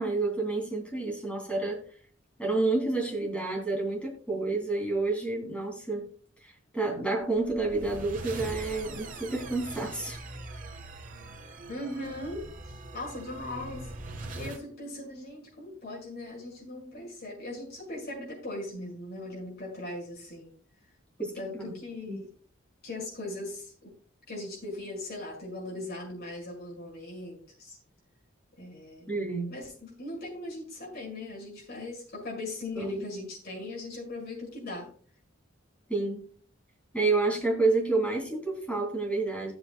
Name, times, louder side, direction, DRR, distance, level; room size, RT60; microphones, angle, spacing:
voice 1, 0.0-1.8 2.4-6.1 6.4-10.2 21.2-21.7 22.1-22.2 29.1-29.6 32.8-32.9 35.9-36.2 36.9-39.5, right 3 dB, 5° left, -1 dB, 3.0 m, -29 dB
sound 1, 7.2-14.6, right 2 dB, 40° right, 1.3 m, -42 dB
voice 2, 11.7-12.5 12.9-13.9 14.3-20.5 21.3-22.3 22.8-23.9 24.3-27.8 28.6-29.1 29.5-34.9, left 2 dB, 50° left, -3 dB, 5.9 m, -39 dB
17.5 x 8.0 x 2.3 m, 0.43 s
head